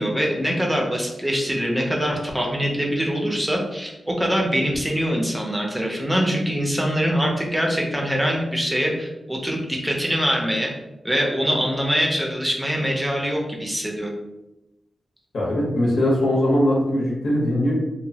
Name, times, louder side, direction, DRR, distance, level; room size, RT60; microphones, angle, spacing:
voice 1, 0.0-10.7 11.0-14.1, equal, 5° right, -1 dB, 0.5 m, -23 dB
voice 2, 15.3-17.7, left 1 dB, 80° left, -4 dB, 0.8 m, -20 dB
2.9 x 2.1 x 2.7 m, 0.97 s
wide cardioid pair, 160°, 0 cm